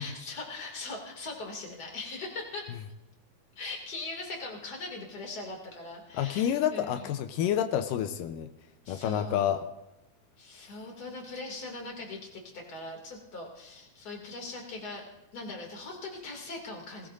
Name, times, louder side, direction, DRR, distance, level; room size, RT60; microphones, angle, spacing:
voice 1, 0.0-2.7 3.6-7.1 8.8-9.6 10.4-15.0 15.3-17.1, left 3 dB, 30° left, 0 dB, 2.6 m, -40 dB
voice 2, 6.1-8.5 8.9-9.6, left 10 dB, 85° left, 8 dB, 2.3 m, -28 dB
20.0 x 18.0 x 2.6 m, 0.95 s
omnidirectional pair, 3.9 m